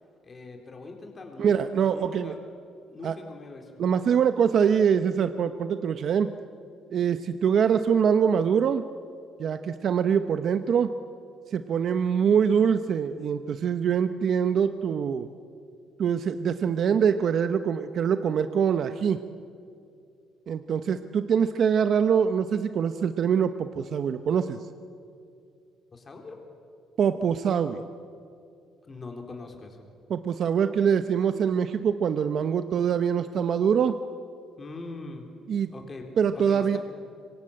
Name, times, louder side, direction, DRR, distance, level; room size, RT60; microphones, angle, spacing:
voice 1, 0.2-1.6 1.9-2.4 2.9-3.7 25.9-26.4 28.8-29.8 34.6-35.3 35.7-36.1 36.4-36.8, left 3 dB, 25° left, 3 dB, 3.8 m, -41 dB
voice 2, 1.4-2.3 3.0-3.1 3.8-6.3 6.9-8.8 9.4-10.9 11.5-15.3 16.0-19.2 20.5-24.6 27.0-27.8 30.1-34.0 35.5-35.7 36.2-36.8, right 7 dB, 50° right, 10 dB, 0.9 m, -24 dB
26.0 x 24.0 x 8.7 m, 2.4 s
cardioid pair, 130°, 0 cm